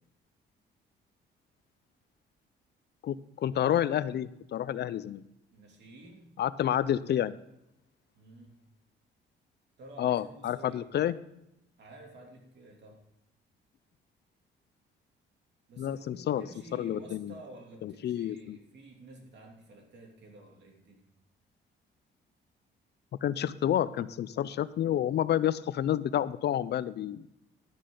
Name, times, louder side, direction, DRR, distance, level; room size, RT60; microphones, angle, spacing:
voice 1, 3.0-5.2 6.4-7.3 10.0-11.1 15.8-16.5 16.7-17.3 17.8-18.6 23.2-27.3, left 11 dB, 60° left, 17 dB, 0.5 m, -29 dB
voice 2, 5.5-6.3 8.1-8.6 9.8-11.1 11.8-13.0 15.7-21.0, right 2 dB, 60° right, 1 dB, 2.9 m, -51 dB
11.5 x 10.0 x 3.9 m, 0.85 s
cardioid pair, 90°, 20 cm